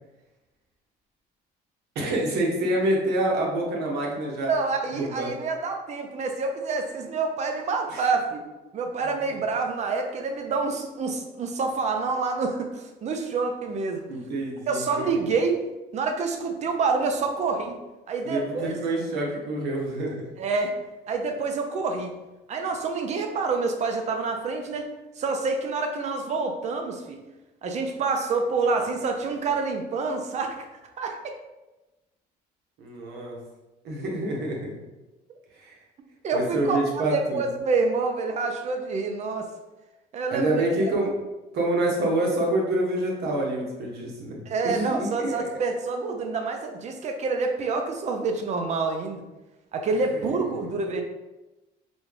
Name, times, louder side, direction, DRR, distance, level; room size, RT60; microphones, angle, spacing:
voice 1, 1.9-4.5 4.9-5.3 7.9-8.1 14.1-15.1 18.2-20.3 32.8-33.4 33.8-34.7 35.6-35.8 36.3-37.4 40.3-41.1 41.5-44.4 44.6-45.5 50.1-50.4, right 1 dB, 80° right, -1 dB, 1.1 m, -27 dB
voice 2, 4.5-8.4 8.7-14.0 14.7-15.6 15.9-17.8 18.1-18.8 20.4-20.8 21.1-22.2 22.5-24.9 25.2-27.2 27.6-30.6 31.0-31.4 36.2-39.5 40.1-40.6 44.5-49.2 49.7-51.0, right 4 dB, 45° right, 4 dB, 0.5 m, -27 dB
4.1 x 2.3 x 3.3 m, 1.0 s
cardioid pair, 110°, 17 cm